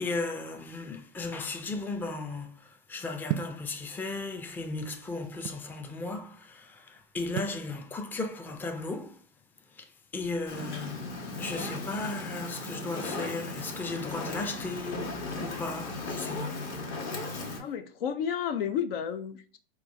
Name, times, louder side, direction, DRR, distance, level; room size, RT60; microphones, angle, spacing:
voice 1, 0.0-9.2 9.7-11.0 11.4-16.6, left 3 dB, 5° left, 0.4 m, -36 dB
sound 1, 3.3-3.6 4.5-5.7 7.4-7.6, right 11 dB, 55° right, 0.4 m, -34 dB
Fire, 10.5-17.6, left 2 dB, 45° left, 1.3 m, -36 dB
voice 2, 17.6-19.6, left 8 dB, 75° left, 0.6 m, -32 dB
4.5 x 2.2 x 3.6 m
hypercardioid pair, 105°, 29 cm